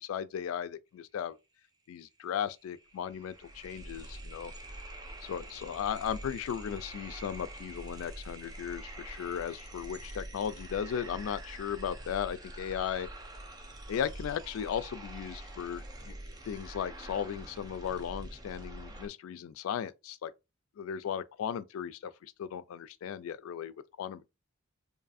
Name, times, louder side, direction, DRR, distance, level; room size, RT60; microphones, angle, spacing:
voice 1, 0.0-1.4 1.9-4.5 5.2-13.1 13.9-16.2 16.4-20.3 20.8-24.3, left 8 dB, 90° left, 0.3 m, -36 dB
sound 1, 2.1-2.2 2.4-19.1, right 1 dB, 20° right, 0.4 m, -45 dB
2.6 x 2.5 x 2.4 m
head